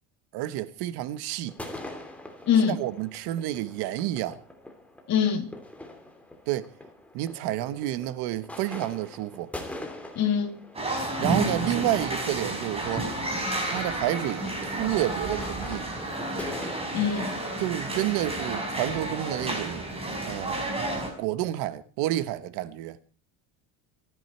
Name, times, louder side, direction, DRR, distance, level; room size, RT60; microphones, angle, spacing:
voice 1, 0.3-1.6 2.8-4.4 6.5-6.7 7.1-9.5 11.2-13.1 13.6-15.9 17.6-19.8 20.3-20.6 21.2-23.0, right 14 dB, 70° right, 1.4 m, -30 dB
sound 1, 1.5-17.6, left 1 dB, 5° left, 3.0 m, -43 dB
voice 2, 2.5-2.8 5.1-5.5 10.1-10.6 16.9-17.4, left 7 dB, 45° left, 2.7 m, -23 dB
sound 2, 10.7-21.1, right 1 dB, 15° right, 4.9 m, -31 dB
25.5 x 10.5 x 4.4 m
cardioid pair, 155°, 40 cm